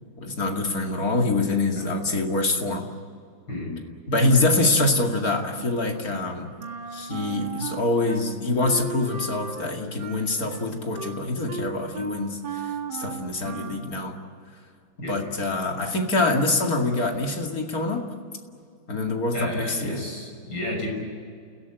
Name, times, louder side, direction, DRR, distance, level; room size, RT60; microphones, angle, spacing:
voice 1, 0.2-2.9 4.1-6.5 6.9-14.2 15.1-18.0 18.9-20.0, left 2 dB, 50° left, 2 dB, 2.8 m, -25 dB
Wind instrument woodwind instrument, 6.6-8.2 8.6-13.9, right 5 dB, 85° right, 2.5 m, -36 dB
voice 2, 19.3-20.9, left 1 dB, 70° left, 1 dB, 7.0 m, -32 dB
30.0 x 17.0 x 9.1 m, 2.2 s
omnidirectional pair, 2.1 m